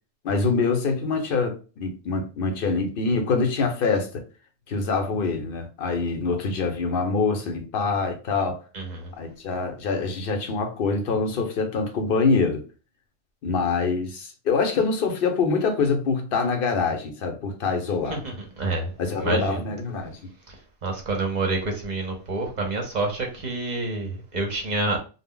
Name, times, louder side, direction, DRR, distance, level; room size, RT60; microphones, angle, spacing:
voice 1, 0.2-4.2 4.7-8.6 9.2-12.6 13.4-18.2 19.0-20.3, left 4 dB, 60° left, 0.7 m, -25 dB
voice 2, 8.7-9.1 18.2-18.8 19.2-19.6 20.8-25.0, right 3 dB, 50° right, 0.6 m, -28 dB
2.0 x 2.0 x 3.6 m
omnidirectional pair, 1.1 m